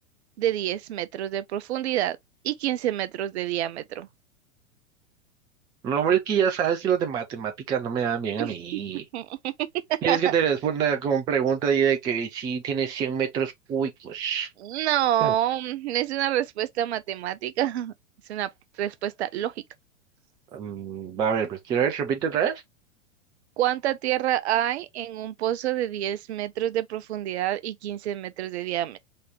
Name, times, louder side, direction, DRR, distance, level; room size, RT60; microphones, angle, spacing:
voice 1, 0.4-2.2 2.4-4.1 8.4-8.8 9.1-9.5 9.9-10.3 14.6-17.9 18.3-18.5 18.8-19.5 23.6-29.0, right 12 dB, 55° right, 0.6 m, -27 dB
voice 2, 5.8-9.0 10.0-14.5 15.2-15.3 20.5-22.6, right 7 dB, 10° right, 0.3 m, -25 dB
3.8 x 2.9 x 3.3 m
figure-of-eight pair, 100°, 40 cm